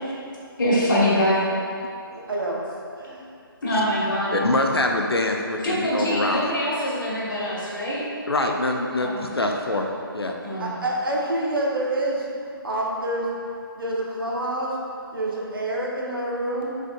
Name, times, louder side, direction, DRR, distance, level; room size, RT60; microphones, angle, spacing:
voice 1, 0.6-1.5 3.6-4.4 5.6-8.0 9.0-9.5 10.4-10.7, equal, 55° left, -6 dB, 1.3 m, -24 dB
voice 2, 2.1-2.6 3.0-3.3 10.6-12.3 12.6-13.3 13.8-14.8 15.1-16.8, right 1 dB, 65° right, -3 dB, 0.9 m, -27 dB
voice 3, 4.3-6.4 8.3-9.9 10.1-10.4, left 2 dB, 90° left, 2 dB, 0.5 m, -24 dB
4.9 x 3.6 x 2.3 m, 2.5 s
figure-of-eight pair, 145°, 13 cm